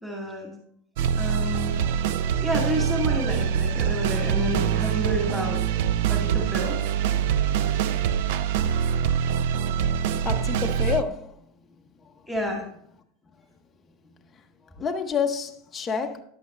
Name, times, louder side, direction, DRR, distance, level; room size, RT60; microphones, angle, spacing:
voice 1, 0.0-0.5 1.1-1.8 2.4-5.8 6.1-6.8 12.3-12.7, equal, 5° right, 2.2 m, -30 dB
sound 1, 1.0-11.0, right 8 dB, 60° right, 0.5 m, -24 dB
voice 2, 10.2-11.3 14.8-16.2, left 6 dB, 15° left, 0.7 m, -28 dB
10.5 x 8.2 x 3.2 m
supercardioid pair, 175°, 0 cm